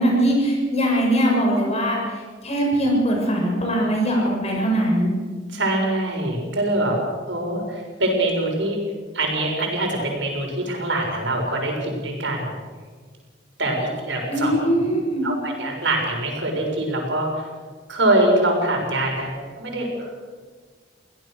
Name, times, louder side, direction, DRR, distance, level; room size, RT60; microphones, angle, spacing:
voice 1, 0.0-2.0 2.4-5.1 14.3-15.2, right 1 dB, 35° left, 0 dB, 7.1 m, -21 dB
voice 2, 5.5-6.9 7.3-8.8 9.1-12.6 13.6-14.5 15.2-17.5 17.9-20.2, right 1 dB, 75° right, 1 dB, 6.7 m, -24 dB
25.0 x 17.5 x 6.8 m, 1.5 s
head